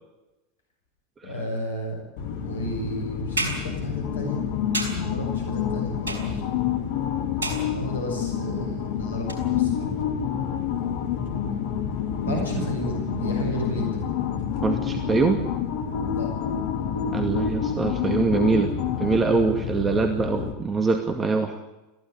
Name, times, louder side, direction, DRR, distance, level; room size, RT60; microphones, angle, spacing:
voice 1, 1.2-2.0 2.4-4.5 4.9-6.4 7.7-9.8 12.3-14.0 16.1-16.3, equal, 75° left, 2 dB, 6.4 m, -33 dB
sound 1, 2.2-20.5, left 8 dB, 60° left, 3.0 m, -28 dB
sound 2, 3.4-3.7 4.7-5.1 6.1-6.5 7.4-7.9 9.3-9.4, right 1 dB, 75° right, 4.9 m, -30 dB
voice 2, 12.3-12.7 14.6-15.4 17.1-18.7 19.0-21.6, right 4 dB, 20° right, 5 dB, 2.3 m, -23 dB
22.0 x 15.5 x 9.6 m, 1.0 s
figure-of-eight pair, 80°, 0 cm